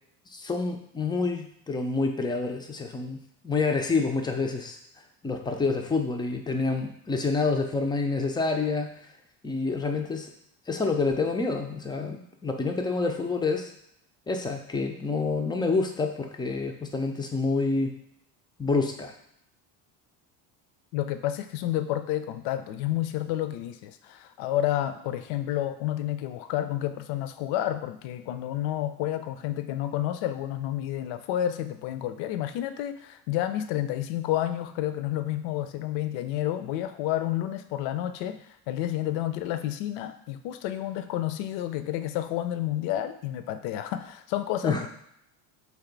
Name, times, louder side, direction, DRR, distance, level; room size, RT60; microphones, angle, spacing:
voice 1, 0.3-3.2 3.4-4.8 5.2-9.1 9.4-10.3 10.7-13.7 14.3-17.9 18.6-19.1 44.6-44.9, left 3 dB, 10° left, 3 dB, 0.3 m, -28 dB
voice 2, 20.9-44.9, left 12 dB, 65° left, 10 dB, 0.5 m, -30 dB
3.5 x 2.6 x 3.8 m, 0.76 s
hypercardioid pair, 75°, 48 cm